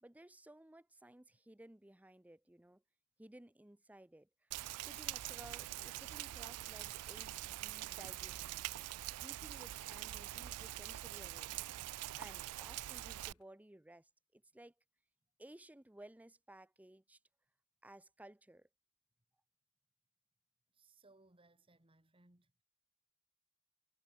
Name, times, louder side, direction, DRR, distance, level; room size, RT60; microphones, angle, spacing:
voice 1, 0.0-2.8 3.2-4.3 4.8-8.7 9.2-11.7 12.1-14.7 15.4-17.2 17.8-18.7, right 1 dB, 5° right, 0.6 m, -58 dB
Rain, 4.5-13.3, right 15 dB, 85° right, 0.4 m, -44 dB
sound 1, 8.4-13.5, left 2 dB, 85° left, 1.7 m, -72 dB
voice 2, 20.7-22.6, right 2 dB, 25° right, 1.8 m, -67 dB
head